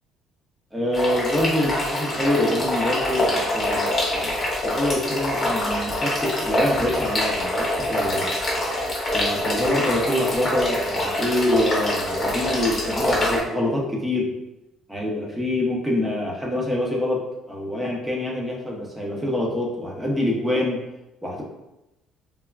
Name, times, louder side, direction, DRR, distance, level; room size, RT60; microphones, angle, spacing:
voice 1, 0.7-8.3 9.1-14.3 14.9-17.2 17.5-20.8 21.2-21.4, left 1 dB, 10° right, -2 dB, 0.6 m, -25 dB
sound 1, 0.9-13.4, left 1 dB, 25° left, 0.7 m, -25 dB
3.3 x 2.1 x 2.3 m, 0.94 s
cardioid pair, 125°, 0 cm